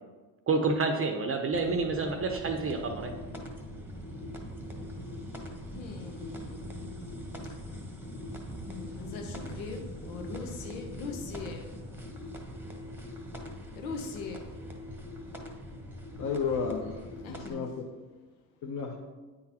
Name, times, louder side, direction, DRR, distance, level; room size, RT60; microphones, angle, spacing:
voice 1, 0.5-3.1, right 3 dB, 30° right, 5 dB, 0.6 m, -28 dB
sound 1, 1.5-17.5, equal, 5° right, 1.0 m, -42 dB
voice 2, 5.7-6.7 8.6-11.6 13.8-14.4 17.2-17.6, left 4 dB, 90° left, 3 dB, 0.9 m, -41 dB
voice 3, 16.2-17.8 18.6-19.0, left 5 dB, 35° left, 1 dB, 0.7 m, -33 dB
9.1 x 3.8 x 2.9 m, 1.3 s
hypercardioid pair, 80°, 50 cm